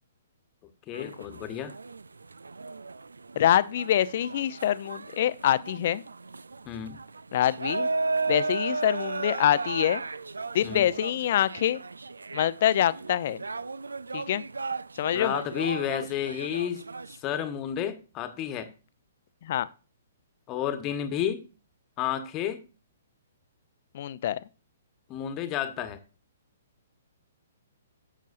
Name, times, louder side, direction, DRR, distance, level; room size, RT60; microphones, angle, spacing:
voice 1, 0.9-1.7 6.6-7.0 10.6-10.9 15.1-16.8 17.2-18.7 20.5-21.4 22.0-22.6 25.1-26.0, left 10 dB, 25° left, 1.2 m, -31 dB
sound 1, 0.9-17.2, right 3 dB, 75° right, 0.3 m, -35 dB
voice 2, 3.4-6.0 7.3-7.9 8.3-10.0 10.5-11.8 12.3-13.4 14.1-14.4 15.0-15.3 19.4-19.7 23.9-24.4, left 11 dB, 50° left, 0.6 m, -25 dB
11.0 x 7.4 x 2.5 m
figure-of-eight pair, 120°, 0 cm